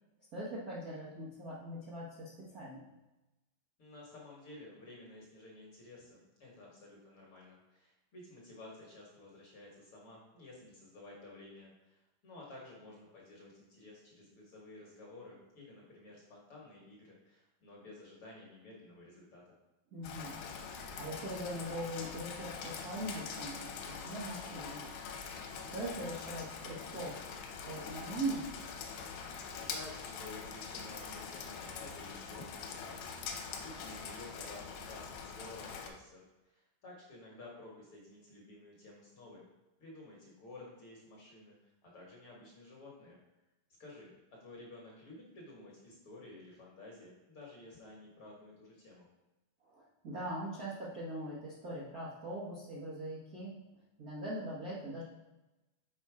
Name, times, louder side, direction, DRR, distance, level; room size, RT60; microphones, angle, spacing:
voice 1, 0.3-2.8 19.9-20.3 20.7-23.7 24.0-24.9 25.7-27.1 27.6-28.5 49.7-53.5 54.0-55.0, right 1 dB, 90° right, -8 dB, 0.8 m, -41 dB
voice 2, 3.8-19.6 29.5-39.4 39.8-43.2 43.8-44.1 44.4-49.1, left 2 dB, 55° left, -3 dB, 1.7 m, -53 dB
Rain, 20.0-35.9, left 5 dB, 80° left, 2.2 m, -44 dB
6.2 x 4.2 x 4.8 m, 1.0 s
omnidirectional pair, 3.8 m